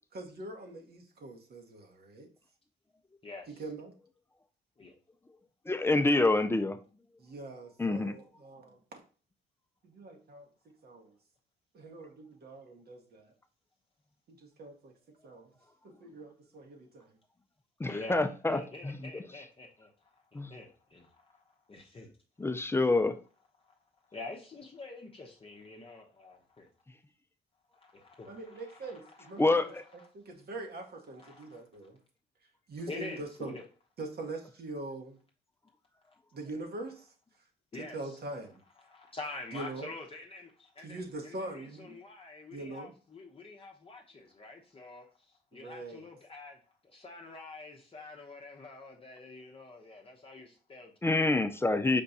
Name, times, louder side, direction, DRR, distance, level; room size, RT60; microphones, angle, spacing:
voice 1, 0.1-2.3 3.5-3.9 7.2-9.0 9.8-10.5 10.8-11.1 11.7-13.3 14.3-14.9 15.2-15.5 15.8-17.1 28.3-32.0 32.7-33.5 34.0-35.2 36.3-37.1 37.8-38.6 39.5-39.9 40.8-42.0 42.5-42.9 45.5-46.0, right 2 dB, 50° right, 1.0 m, -43 dB
voice 2, 3.2-3.6 4.8-4.9 17.9-22.1 23.6-23.8 24.1-26.7 27.7-30.1 31.2-31.6 32.9-33.6 36.1-36.2 37.7-38.2 38.8-51.3, left 3 dB, 30° left, 0.8 m, -47 dB
voice 3, 5.7-6.8 7.8-8.1 17.8-18.6 20.3-20.5 22.4-23.1 29.4-29.8 51.0-52.0, left 2 dB, 10° left, 0.4 m, -26 dB
5.2 x 2.3 x 4.0 m
cardioid pair, 90°, 20 cm